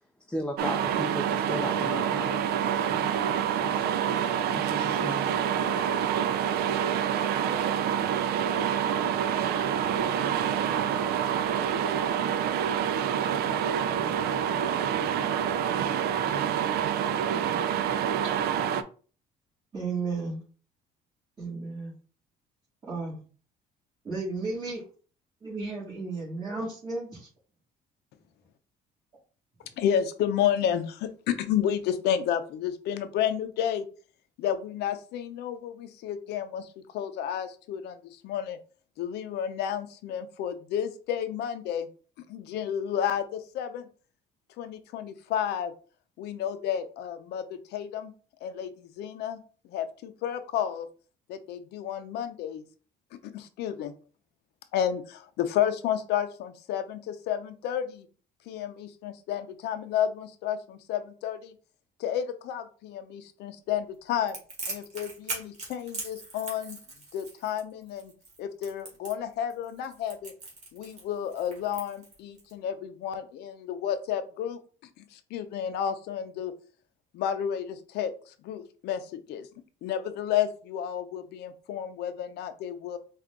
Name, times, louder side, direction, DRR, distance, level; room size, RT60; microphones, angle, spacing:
voice 1, 0.3-3.9 4.5-5.4, equal, 5° left, 4 dB, 0.4 m, -36 dB
sound 1, 0.6-18.8, right 9 dB, 70° right, 0.4 m, -27 dB
voice 2, 19.7-20.4 21.4-21.9 22.8-23.2 24.0-24.8 25.4-27.3, right 3 dB, 25° right, -10 dB, 2.2 m, -33 dB
voice 3, 29.8-33.9 34.4-36.7 36.9-38.6 39.0-41.9 42.3-43.9 44.6-45.7 46.2-48.1 48.4-49.4 49.7-50.9 51.3-52.6 53.2-53.9 54.7-58.1 58.5-61.5 62.0-64.4 64.7-66.8 67.1-68.1 68.4-70.3 70.7-74.6 75.0-76.5 77.1-78.1 78.4-79.5 79.8-83.0, left 9 dB, 80° left, 10 dB, 0.6 m, -31 dB
Crackle, 64.3-72.5, right 3 dB, 45° right, 2.0 m, -40 dB
4.5 x 2.5 x 3.7 m, 0.39 s
cardioid pair, 110°, 17 cm